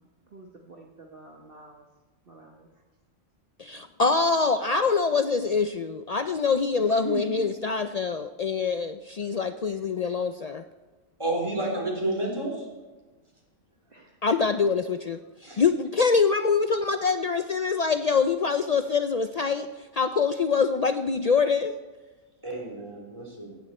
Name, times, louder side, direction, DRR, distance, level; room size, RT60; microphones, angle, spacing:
voice 1, 0.3-1.9 2.3-2.7 6.8-7.5 9.7-9.8 10.2-10.3 11.7-11.9 13.9-14.4, right 2 dB, 40° right, 1 dB, 1.4 m, -41 dB
voice 2, 3.6-10.6 14.2-15.2 15.6-19.7 19.9-21.7, left 5 dB, 80° left, 9 dB, 0.3 m, -24 dB
voice 3, 11.2-12.6 15.4-15.6 22.4-23.5, right 1 dB, 20° right, -1 dB, 3.6 m, -30 dB
16.5 x 14.5 x 4.3 m, 1.3 s
omnidirectional pair, 1.5 m